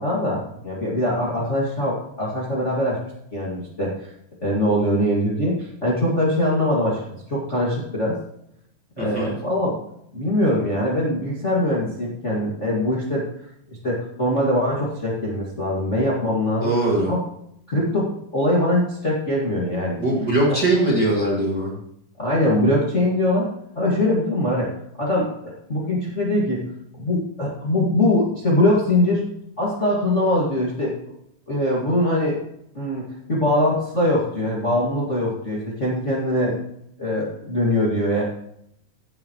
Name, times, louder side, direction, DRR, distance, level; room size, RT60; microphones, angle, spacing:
voice 1, 0.0-3.0 3.3-4.1 4.4-7.0 7.3-8.2 9.0-9.8 10.1-13.2 13.8-16.7 17.1-17.2 17.7-20.0 20.5-20.6 22.2-23.5 23.8-24.7 25.0-26.6 27.0-29.3 29.6-30.9 31.5-32.4 32.7-36.5 37.0-38.2, left 1 dB, 25° left, -5 dB, 1.8 m, -22 dB
voice 2, 9.0-9.4 16.6-17.1 20.0-21.7, right 2 dB, 35° right, -4 dB, 2.1 m, -21 dB
16.0 x 7.4 x 3.0 m, 0.73 s
omnidirectional pair, 3.9 m